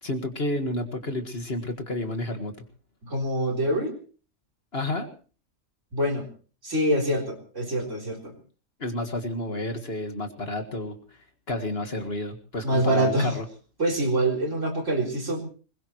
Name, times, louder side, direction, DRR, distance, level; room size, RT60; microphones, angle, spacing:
voice 1, 0.0-2.5 4.7-5.1 8.8-11.0 11.5-13.4, left 1 dB, 45° left, 6 dB, 1.9 m, -30 dB
voice 2, 3.0-4.0 5.9-6.3 6.6-8.3 12.6-13.3 13.8-15.4, right 1 dB, 60° right, 0 dB, 4.2 m, -25 dB
21.0 x 21.0 x 3.1 m, 0.39 s
omnidirectional pair, 1.5 m